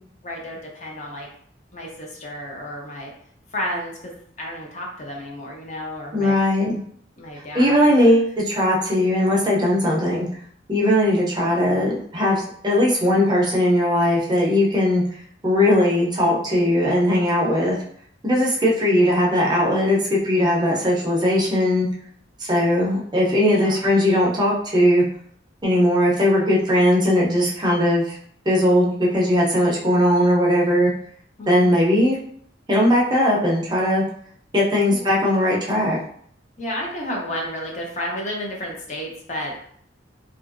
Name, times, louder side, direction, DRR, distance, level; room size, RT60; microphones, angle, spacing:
voice 1, 0.2-1.3 1.7-3.1 3.5-6.4 7.2-8.1 11.0-11.2 17.4-17.5 23.4-24.0 31.4-31.7 34.9-35.1 36.6-39.6, equal, 40° left, -1 dB, 0.6 m, -32 dB
voice 2, 6.1-6.8 7.5-10.3 10.7-15.0 15.4-17.8 18.2-21.9 22.4-25.0 25.6-28.2 28.5-30.9 31.5-32.2 32.7-34.0 34.5-36.0, left 1 dB, 25° right, -4 dB, 0.5 m, -19 dB
2.8 x 2.4 x 2.5 m, 0.62 s
head